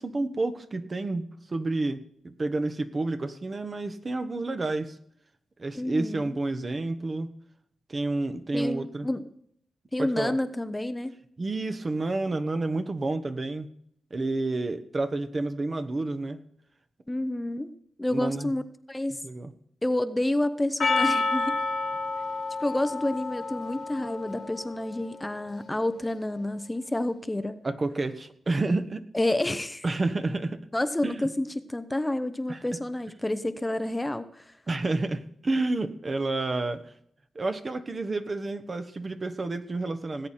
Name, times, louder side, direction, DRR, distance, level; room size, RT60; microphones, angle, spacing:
voice 1, 0.0-5.0 5.6-7.3 7.9-9.1 10.0-10.4 11.4-13.7 14.1-16.4 18.1-18.5 19.2-19.5 27.6-29.0 29.8-30.6 31.0-31.2 32.5-32.6 34.7-36.8 37.3-40.3, right 2 dB, 40° right, 9 dB, 1.3 m, -30 dB
voice 2, 5.7-6.4 8.5-9.3 9.9-11.2 17.1-17.7 18.0-18.6 18.9-19.2 19.8-21.6 22.6-27.6 29.1-29.8 30.7-34.5, left 1 dB, 15° left, 11 dB, 0.8 m, -29 dB
Percussion, 20.8-25.1, left 3 dB, 55° left, 1.7 m, -29 dB
18.5 x 8.3 x 4.4 m, 0.68 s
cardioid pair, 60°, 0 cm